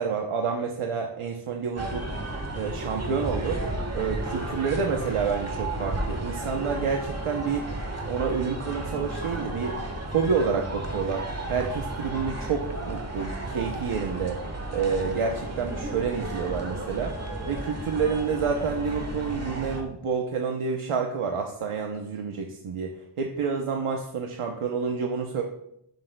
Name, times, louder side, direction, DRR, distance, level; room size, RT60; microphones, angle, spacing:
voice 1, 0.0-3.6 3.9-7.7 8.1-9.8 10.1-14.4 14.7-17.2 17.5-25.4, right 5 dB, 80° right, 2 dB, 0.8 m, -29 dB
sound 1, 1.8-19.8, right 1 dB, 30° right, 1.4 m, -33 dB
11.5 x 6.9 x 2.2 m, 0.77 s
wide cardioid pair, 80°, 50 cm